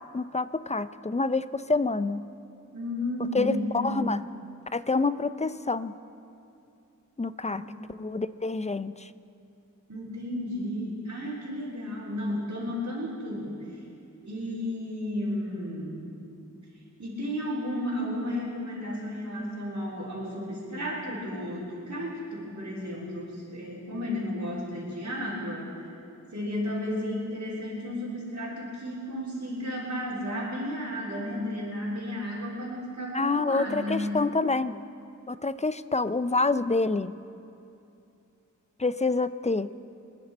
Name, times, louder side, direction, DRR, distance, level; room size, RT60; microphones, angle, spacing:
voice 1, 0.0-2.3 3.3-4.2 4.7-5.9 7.2-7.6 7.9-9.1 33.1-34.8 35.3-37.2 38.8-39.7, left 3 dB, 20° left, 13 dB, 0.4 m, -27 dB
voice 2, 2.7-4.1 7.5-7.7 9.9-13.6 14.2-16.1 17.0-25.7 26.3-34.2, left 1 dB, 65° right, -9 dB, 3.8 m, -33 dB
24.5 x 10.5 x 4.4 m, 2.7 s
wide cardioid pair, 70°, 32 cm